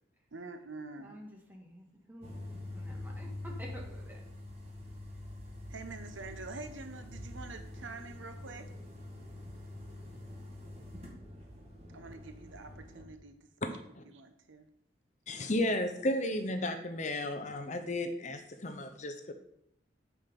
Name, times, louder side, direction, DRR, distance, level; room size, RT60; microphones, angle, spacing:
voice 1, 0.3-1.2 5.7-8.7 11.9-13.8 14.1-14.7, right 3 dB, 80° right, 8 dB, 0.9 m, -46 dB
voice 2, 0.9-2.4 2.7-4.2, equal, 10° right, -1 dB, 1.7 m, -50 dB
sound 1, 2.2-13.0, left 1 dB, 35° right, 1.7 m, -45 dB
voice 3, 15.3-19.3, left 1 dB, 40° left, 8 dB, 0.7 m, -33 dB
8.6 x 5.9 x 5.3 m, 0.77 s
head